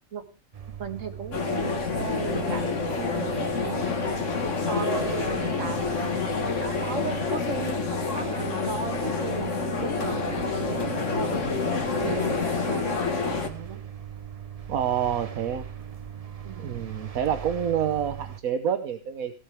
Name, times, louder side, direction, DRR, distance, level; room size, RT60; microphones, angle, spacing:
sound 1, 0.5-18.4, right 8 dB, 35° right, 0.7 m, -39 dB
voice 1, 0.8-4.3 4.6-5.8 6.6-13.8 16.4-16.9, right 5 dB, 60° right, 7 dB, 2.0 m, -36 dB
sound 2, 1.3-13.5, left 4 dB, 60° left, 1.9 m, -28 dB
voice 2, 14.7-15.7 16.6-19.3, right 9 dB, 80° right, 9 dB, 1.4 m, -27 dB
16.5 x 12.5 x 3.5 m, 0.33 s
omnidirectional pair, 1.5 m